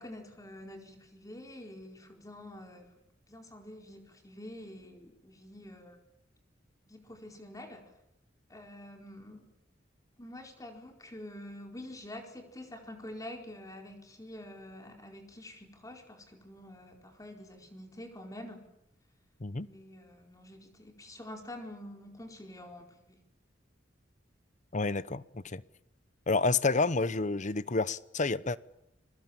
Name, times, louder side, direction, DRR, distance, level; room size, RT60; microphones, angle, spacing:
voice 1, 0.0-2.9 3.3-6.0 6.9-7.8 8.5-9.5 10.2-18.7 19.6-23.2, left 1 dB, 20° left, 4.5 m, -47 dB
voice 2, 24.7-25.6 26.3-28.6, left 3 dB, 40° left, 0.9 m, -29 dB
30.0 x 23.0 x 7.3 m
head